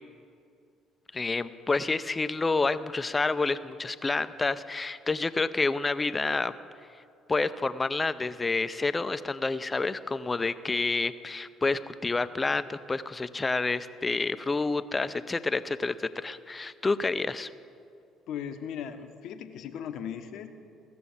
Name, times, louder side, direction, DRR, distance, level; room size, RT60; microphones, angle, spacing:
voice 1, 1.1-6.5 7.3-17.5, left 3 dB, 25° left, 14 dB, 0.5 m, -29 dB
voice 2, 18.3-20.5, left 8 dB, 65° left, 8 dB, 0.8 m, -37 dB
15.5 x 6.9 x 7.1 m, 2.4 s
hypercardioid pair, 55°, 0 cm